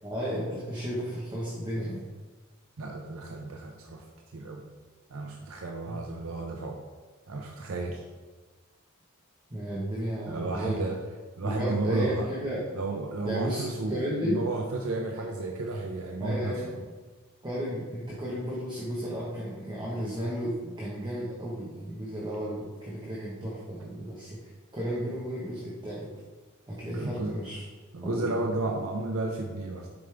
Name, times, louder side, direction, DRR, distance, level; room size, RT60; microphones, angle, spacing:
voice 1, 0.0-2.1 5.9-6.0 9.5-10.9 11.4-12.6 13.2-14.4 15.2-15.3 16.2-16.7 17.4-26.1 26.7-27.6 28.0-28.3, equal, 20° right, -6 dB, 1.2 m, -33 dB
voice 2, 2.8-4.0 4.3-4.6 5.1-6.8 7.3-8.0 10.3-11.0 11.4-12.3 12.7-16.8 26.9-27.4 27.9-29.9, right 2 dB, 70° right, 2 dB, 0.6 m, -32 dB
7.0 x 5.2 x 3.4 m, 1.3 s
head